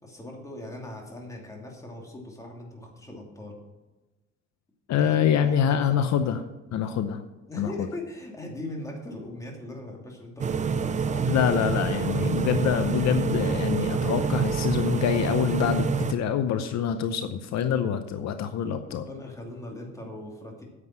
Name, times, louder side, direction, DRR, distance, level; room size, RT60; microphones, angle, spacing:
voice 1, 0.0-3.5 5.0-6.0 7.5-11.4 12.0-12.4 18.8-20.6, left 1 dB, 10° left, 0 dB, 2.7 m, -40 dB
voice 2, 4.9-6.4 6.7-7.2 7.6-7.7 11.3-19.0, left 8 dB, 65° left, 9 dB, 0.8 m, -25 dB
sound 1, 10.4-16.1, right 6 dB, 25° right, 0.5 m, -27 dB
sound 2, 13.1-17.0, right 1 dB, 30° left, 3.4 m, -49 dB
9.7 x 7.6 x 7.5 m, 1.1 s
cardioid pair, 140°, 30 cm